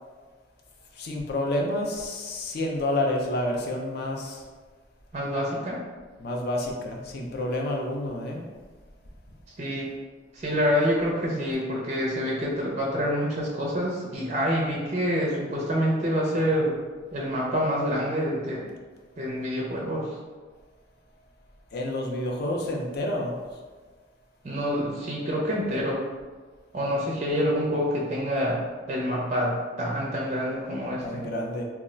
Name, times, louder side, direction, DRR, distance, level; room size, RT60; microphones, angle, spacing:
voice 1, 0.9-4.4 6.2-8.4 21.7-23.3 31.0-31.6, left 1 dB, 50° left, 0 dB, 0.4 m, -29 dB
voice 2, 5.1-5.8 9.6-9.9 10.3-16.7 17.1-18.6 19.2-20.2 24.4-26.0 26.7-28.6 28.9-31.2, equal, 35° right, -3 dB, 0.4 m, -27 dB
2.3 x 2.1 x 3.7 m, 1.4 s
head